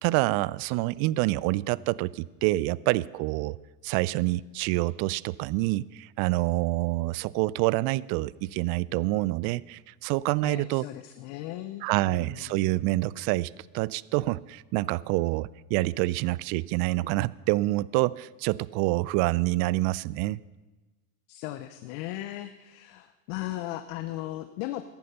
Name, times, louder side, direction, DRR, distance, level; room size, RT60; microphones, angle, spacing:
voice 1, 0.0-3.6 3.8-10.8 11.8-20.4, right 19 dB, 60° right, 22 dB, 0.5 m, -27 dB
voice 2, 10.4-12.6 21.3-24.8, left 15 dB, 65° left, 11 dB, 0.8 m, -37 dB
14.5 x 10.5 x 5.6 m, 1.2 s
supercardioid pair, 95°, 41 cm